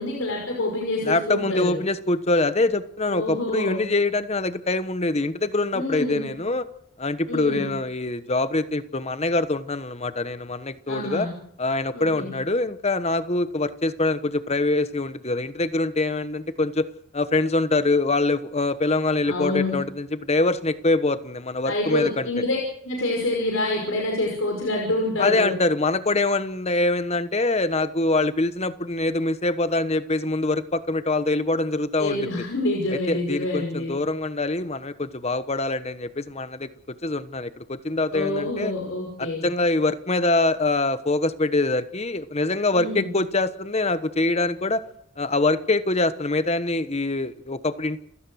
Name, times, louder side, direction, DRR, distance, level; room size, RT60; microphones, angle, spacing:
voice 1, 0.0-1.8 3.1-3.8 5.7-6.3 7.3-7.7 10.9-11.4 11.9-12.4 19.3-19.8 21.6-22.6 22.8-25.5 32.0-33.9 38.1-39.5 42.7-43.2, left 2 dB, 70° left, 0 dB, 5.6 m, -27 dB
voice 2, 1.0-6.6 7.0-11.3 11.6-16.9 17.1-22.3 25.2-32.3 32.9-36.7 37.0-38.7 39.2-44.8 45.2-48.0, left 2 dB, 30° left, 12 dB, 1.2 m, -24 dB
29.0 x 17.5 x 6.4 m, 0.76 s
head